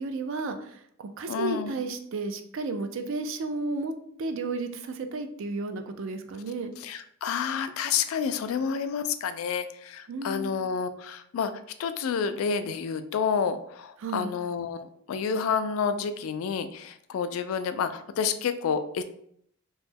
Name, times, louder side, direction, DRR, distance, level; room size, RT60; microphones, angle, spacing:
voice 1, 0.0-3.9 4.2-6.7 10.1-10.6 14.0-14.3, right 3 dB, 65° right, 7 dB, 0.4 m, -33 dB
voice 2, 1.3-1.7 6.8-11.5 11.8-19.0, left 6 dB, 80° left, 10 dB, 0.3 m, -29 dB
3.0 x 2.1 x 3.4 m, 0.68 s
head